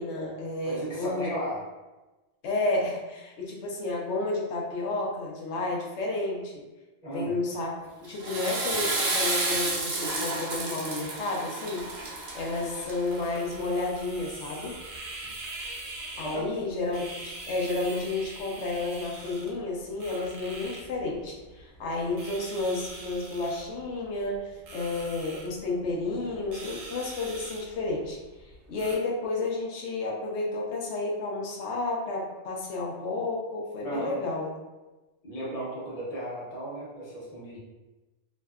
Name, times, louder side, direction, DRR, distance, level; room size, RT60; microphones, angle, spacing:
voice 1, 0.0-1.3 2.4-6.7 7.1-7.7 8.0-12.0 12.3-14.8 16.2-28.2 28.7-34.5, left 2 dB, 80° left, -1 dB, 0.9 m, -31 dB
voice 2, 0.6-1.6 7.0-7.3 16.2-16.5 33.8-34.1 35.2-37.6, right 1 dB, 35° left, -9 dB, 0.8 m, -35 dB
Water / Toilet flush, 8.0-13.3, right 2 dB, 55° right, 0.5 m, -31 dB
sound 1, 11.8-29.0, right 2 dB, 85° right, 0.9 m, -44 dB
2.6 x 2.2 x 2.3 m, 1.1 s
omnidirectional pair, 1.2 m